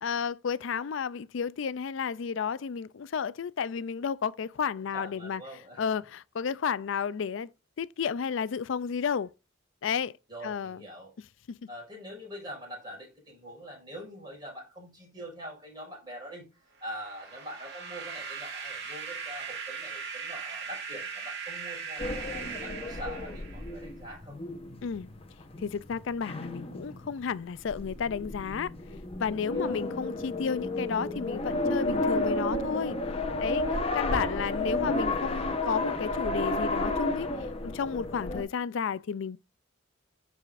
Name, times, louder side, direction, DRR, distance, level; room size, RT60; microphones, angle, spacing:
voice 1, 0.0-5.4 5.8-7.5 7.8-9.3 9.8-10.1 10.4-10.8 11.5-11.6 24.8-25.1 25.6-28.7 29.2-33.0 33.4-33.6 33.9-37.3 37.6-39.4, left 6 dB, 65° left, 0.4 m, -32 dB
voice 2, 4.8-5.8 10.3-11.1 11.7-16.5 16.8-22.2 22.5-24.4 29.3-29.8 33.4-34.1, equal, 20° right, 5.4 m, -44 dB
sound 1, 16.8-23.8, right 6 dB, 50° right, 2.8 m, -39 dB
sound 2, 22.0-38.4, left 2 dB, 30° left, 1.0 m, -32 dB
14.0 x 4.9 x 2.5 m
head